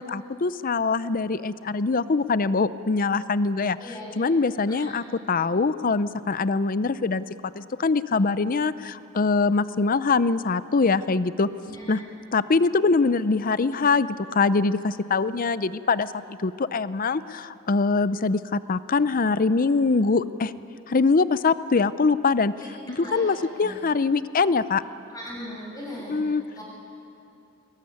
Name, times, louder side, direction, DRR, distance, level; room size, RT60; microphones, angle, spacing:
voice 1, 0.0-7.2 7.6-11.5 11.9-12.0 12.3-20.5 20.9-22.5 22.9-24.8 26.1-26.4, left 4 dB, 40° left, 15 dB, 0.6 m, -23 dB
voice 2, 3.8-4.3 4.7-4.9 11.6-11.9 22.6-22.7 22.9-23.8 25.1-26.6, equal, 15° left, -4 dB, 7.2 m, -39 dB
22.5 x 20.0 x 9.6 m, 2.9 s
head